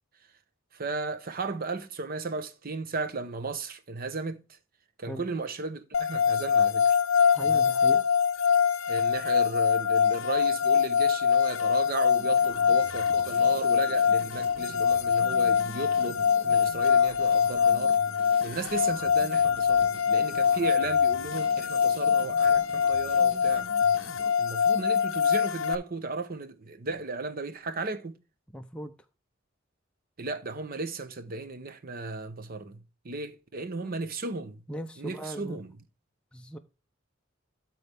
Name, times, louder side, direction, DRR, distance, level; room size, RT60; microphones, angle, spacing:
voice 1, 0.7-4.6 5.0-7.0 7.4-7.7 8.9-18.0 18.4-23.7 24.4-28.2 30.2-34.6 35.0-35.8, right 3 dB, 50° right, 0.8 m, -35 dB
sound 1, 5.9-25.8, left 7 dB, 75° left, 0.5 m, -24 dB
voice 2, 7.3-8.1 28.5-28.9 33.8-33.9 34.7-35.6 36.3-36.6, right 1 dB, 5° left, 0.5 m, -39 dB
sound 2, 12.1-24.3, right 2 dB, 30° right, 1.0 m, -47 dB
12.5 x 4.3 x 3.4 m
head